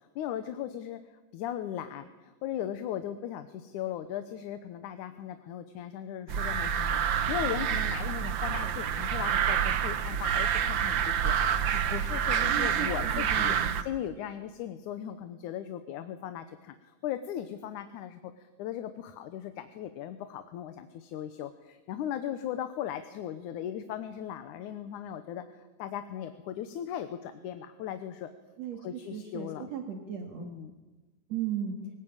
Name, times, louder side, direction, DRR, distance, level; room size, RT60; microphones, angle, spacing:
voice 1, 0.2-1.0 1.3-7.0 7.3-16.8 17.0-28.3 28.8-29.7 30.4-30.7, left 10 dB, 75° left, 9 dB, 2.4 m, -38 dB
sound 1, 6.3-13.8, right 8 dB, 80° right, 1.0 m, -28 dB
voice 2, 12.4-13.8 28.6-30.5 31.3-31.8, right 8 dB, 60° right, 4 dB, 2.9 m, -36 dB
24.0 x 17.0 x 8.9 m, 1.2 s
omnidirectional pair, 3.6 m